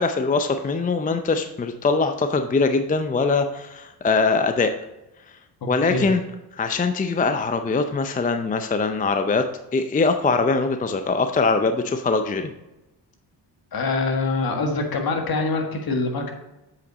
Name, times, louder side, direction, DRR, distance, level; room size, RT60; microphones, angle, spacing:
voice 1, 0.0-4.7 5.7-6.2 6.6-12.5, left 4 dB, 20° left, 8 dB, 0.5 m, -22 dB
voice 2, 13.7-16.3, left 3 dB, 55° left, 3 dB, 1.7 m, -24 dB
7.7 x 5.7 x 4.0 m, 0.97 s
cardioid pair, 75°, 43 cm